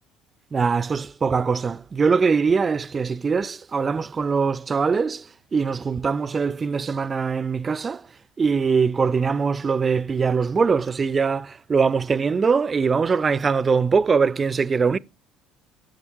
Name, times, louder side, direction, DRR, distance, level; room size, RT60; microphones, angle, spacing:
voice 1, 0.5-5.2 5.5-8.0 8.4-15.0, right 5 dB, 30° right, 0.4 m, -22 dB
10.5 x 8.4 x 3.0 m
figure-of-eight pair, 55°, 0 cm